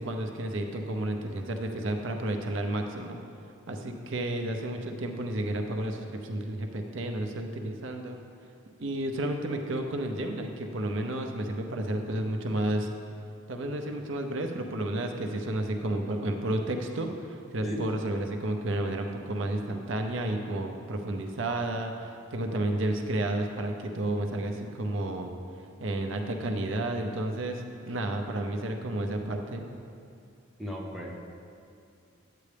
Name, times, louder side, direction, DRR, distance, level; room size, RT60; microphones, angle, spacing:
voice 1, 0.0-3.2 3.7-8.2 8.8-12.9 13.5-25.3 25.8-29.7, right 1 dB, 65° right, 4 dB, 0.6 m, -31 dB
voice 2, 30.6-31.2, equal, ahead, -2 dB, 0.7 m, -35 dB
9.3 x 8.4 x 3.4 m, 2.5 s
head